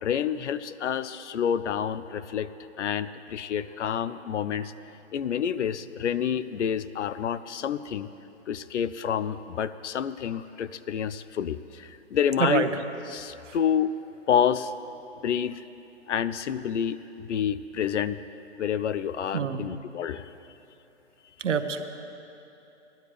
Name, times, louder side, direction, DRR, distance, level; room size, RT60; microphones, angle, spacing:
voice 1, 0.0-2.5 2.8-4.7 5.1-8.1 8.5-12.7 13.1-14.0 14.3-14.7 15.2-15.6 16.1-18.2 18.6-20.3, left 8 dB, 70° left, 15 dB, 0.6 m, -28 dB
voice 2, 12.4-12.8 13.5-13.6 19.3-19.6 21.4-21.8, right 6 dB, 80° right, 8 dB, 1.0 m, -26 dB
17.0 x 11.5 x 3.3 m, 2.9 s
hypercardioid pair, 165°, 36 cm